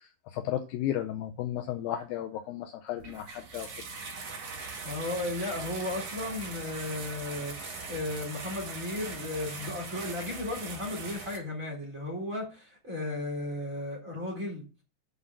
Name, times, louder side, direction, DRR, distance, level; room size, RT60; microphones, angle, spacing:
voice 1, 0.3-3.7, left 11 dB, 90° left, 2.0 m, -34 dB
sound 1, 3.0-11.4, right 4 dB, 45° right, 3.0 m, -41 dB
voice 2, 4.8-14.6, left 2 dB, 20° right, 3.4 m, -35 dB
8.4 x 5.6 x 7.5 m
omnidirectional pair, 5.2 m